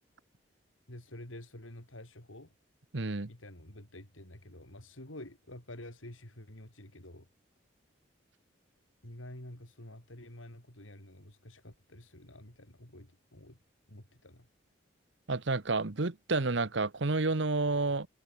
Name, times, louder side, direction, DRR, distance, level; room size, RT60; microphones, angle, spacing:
voice 1, 0.9-2.5 3.3-7.3 9.0-13.6 13.9-14.5, left 1 dB, 85° left, 4.9 m, -49 dB
voice 2, 2.9-3.3 15.3-18.1, right 3 dB, 65° right, 1.1 m, -30 dB
head